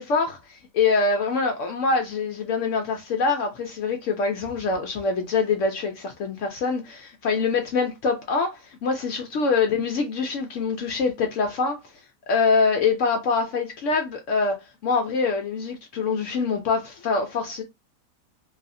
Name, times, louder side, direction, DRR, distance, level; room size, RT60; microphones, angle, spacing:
voice 1, 0.0-11.8 12.3-17.6, left 4 dB, 70° left, 0.7 m, -24 dB
2.7 x 2.4 x 2.5 m
omnidirectional pair, 1.7 m